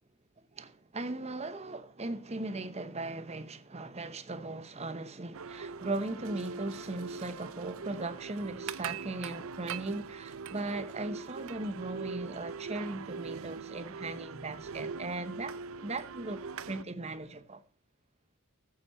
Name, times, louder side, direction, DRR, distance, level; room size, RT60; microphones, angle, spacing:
voice 1, 0.5-16.4 16.7-17.6, right 2 dB, 30° right, 0.9 m, -38 dB
sound 1, 5.3-16.8, right 5 dB, 80° right, 0.5 m, -41 dB
15.0 x 8.0 x 4.3 m
head